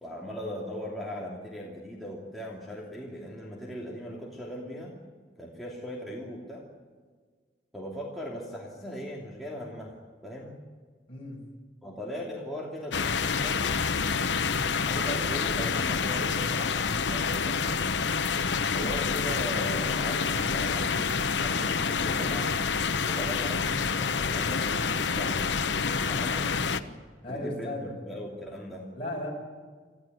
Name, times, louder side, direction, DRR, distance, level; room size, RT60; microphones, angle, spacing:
voice 1, 0.0-5.0 5.4-6.6 7.7-10.6 11.8-13.8 14.7-17.9 18.7-22.5 23.1-25.4 26.0-26.5 27.3-28.9, equal, ahead, -4 dB, 2.9 m, -39 dB
voice 2, 11.1-11.4 26.1-26.8 27.2-27.9 28.9-29.3, left 1 dB, 35° left, -1 dB, 7.3 m, -36 dB
sound 1, 12.9-26.8, left 5 dB, 80° left, 1.0 m, -28 dB
27.0 x 14.5 x 9.3 m, 1.5 s
head